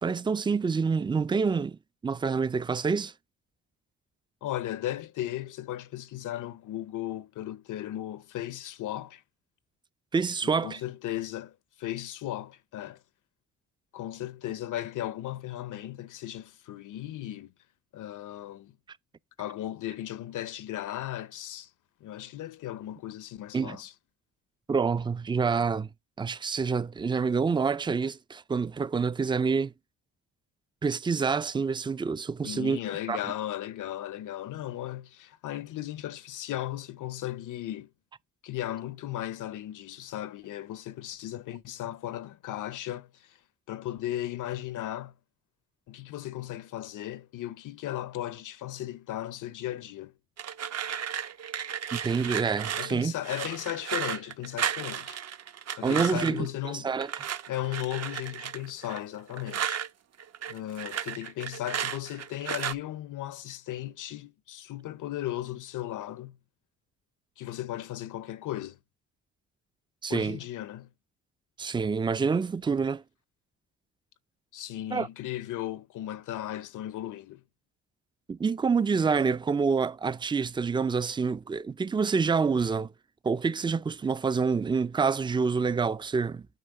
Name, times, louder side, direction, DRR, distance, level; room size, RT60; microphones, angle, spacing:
voice 1, 0.0-3.1 10.1-10.8 23.5-23.8 24.7-25.9 26.2-29.7 30.8-32.8 33.1-33.2 51.9-53.1 55.8-57.1 70.0-70.4 71.6-73.0 74.9-75.1 78.3-82.9 83.2-86.5, right 5 dB, 15° right, 0.4 m, -27 dB
voice 2, 4.4-9.2 10.4-13.0 13.9-17.5 17.9-18.8 19.4-21.7 22.0-23.9 32.4-37.9 38.4-43.4 43.7-45.1 45.9-50.1 52.8-55.2 55.8-56.9 57.5-59.8 60.5-66.4 67.4-68.8 70.1-70.9 74.5-77.4, left 13 dB, 70° left, 0.7 m, -36 dB
sound 1, 50.4-56.5 57.0-59.9 60.2-62.7, right 8 dB, 50° right, 0.9 m, -34 dB
9.0 x 3.1 x 6.4 m
cardioid pair, 85°, 32 cm